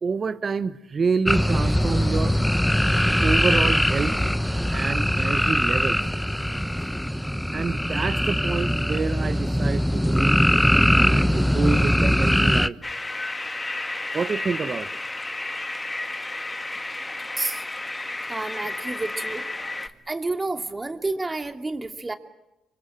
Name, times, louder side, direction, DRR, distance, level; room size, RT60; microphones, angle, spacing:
voice 1, 0.0-2.4 3.2-4.1 4.7-6.0 7.5-10.4 10.9-12.8 14.1-14.9, right 5 dB, 45° right, 13 dB, 1.3 m, -28 dB
sound 1, 1.2-12.7, equal, ahead, 0.9 m, -21 dB
sound 2, 12.8-19.9, left 2 dB, 20° left, 1.7 m, -32 dB
voice 2, 18.3-19.4 20.1-22.1, right 2 dB, 25° right, 6 dB, 2.7 m, -29 dB
28.0 x 25.0 x 7.7 m, 0.91 s
cardioid pair, 75°, 0 cm